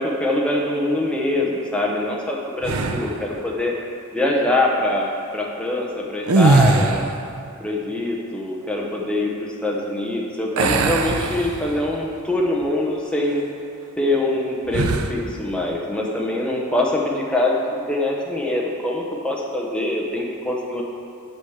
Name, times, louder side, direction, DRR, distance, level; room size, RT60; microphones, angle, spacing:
voice 1, 0.0-5.0 5.3-7.1 7.6-13.4 14.0-17.5 17.9-20.8, left 1 dB, 5° left, -2 dB, 1.0 m, -23 dB
sound 1, 2.6-3.3 6.2-7.3 10.6-12.0 12.5-12.7 14.7-15.2, right 3 dB, 90° right, 0.6 m, -20 dB
8.2 x 5.0 x 7.2 m, 2.6 s
head